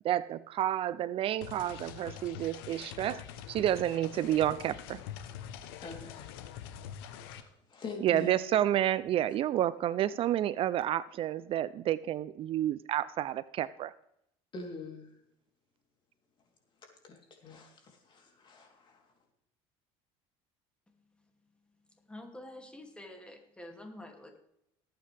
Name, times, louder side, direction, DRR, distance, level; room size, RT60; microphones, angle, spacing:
voice 1, 0.0-3.2 3.5-5.0 8.0-13.9, right 12 dB, 50° right, 17 dB, 0.5 m, -30 dB
sound 1, 1.4-7.4, left 9 dB, 90° left, 1.0 m, -45 dB
voice 2, 5.8-6.4 7.2-8.4 14.5-15.1 16.8-19.1, left 3 dB, 40° left, 2 dB, 3.4 m, -45 dB
voice 3, 22.1-24.4, left 1 dB, 10° left, 3 dB, 2.6 m, -47 dB
18.5 x 9.0 x 3.5 m, 0.76 s
supercardioid pair, 105°, 12 cm